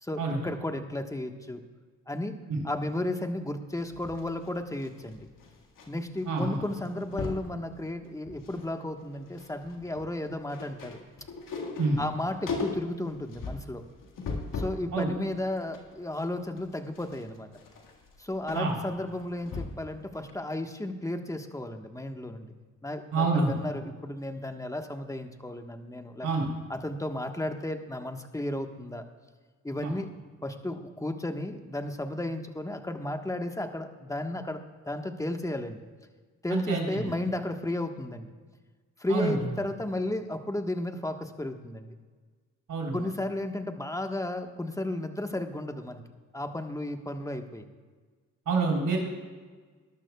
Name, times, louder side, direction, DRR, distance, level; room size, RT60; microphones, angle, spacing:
voice 1, 0.0-1.6 2.1-2.3 2.6-5.2 5.9-11.0 12.0-13.8 14.5-17.5 18.2-22.5 22.8-26.3 26.7-29.0 29.6-30.1 30.4-35.8 36.4-38.3 39.0-42.0 42.9-46.0 46.3-47.6, left 1 dB, 10° left, 6 dB, 1.3 m, -33 dB
sound 1, 3.7-5.9 6.1-6.4 6.7-7.5 8.0-8.7 9.0-14.9 15.3-19.9 20.3-20.4, left 4 dB, 70° left, 1.9 m, -38 dB
voice 2, 6.2-6.6 11.8-12.0 14.9-15.1 18.5-18.8 23.1-23.6 26.2-26.5 29.8-29.9 36.5-37.1 39.1-39.4 42.7-43.0 48.5-49.0, right 3 dB, 70° right, -1 dB, 3.7 m, -27 dB
20.0 x 12.0 x 2.3 m, 1.4 s
supercardioid pair, 55°, 33 cm